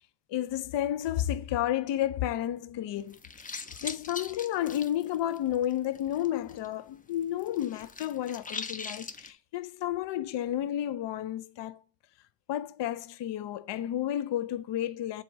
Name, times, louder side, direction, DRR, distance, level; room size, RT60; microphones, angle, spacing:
voice 1, 0.3-11.8 12.5-15.2, left 12 dB, 70° left, 0.5 m, -31 dB
sound 1, 3.0-6.7 6.9-9.3, left 4 dB, 20° left, 0.4 m, -41 dB
7.7 x 2.9 x 6.0 m
wide cardioid pair, 145°, 45 cm